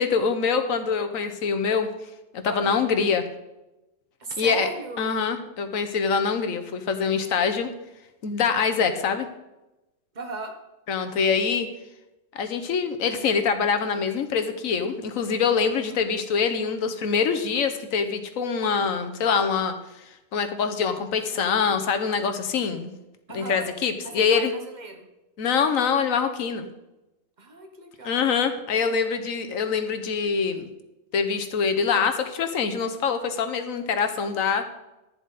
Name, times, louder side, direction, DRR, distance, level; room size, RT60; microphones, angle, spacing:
voice 1, 0.0-1.9 2.3-3.2 4.4-4.7 5.0-7.7 8.2-9.3 10.9-11.7 12.3-22.9 23.3-24.5 25.4-26.7 28.0-30.7 31.1-34.6, left 6 dB, 90° left, 8 dB, 1.4 m, -24 dB
voice 2, 2.4-2.8 4.2-5.1 10.1-10.5 15.8-16.0 23.3-23.7 24.0-25.1 27.4-28.2, right 3 dB, 35° right, 4 dB, 1.5 m, -37 dB
11.0 x 9.9 x 4.1 m, 0.98 s
omnidirectional pair, 1.4 m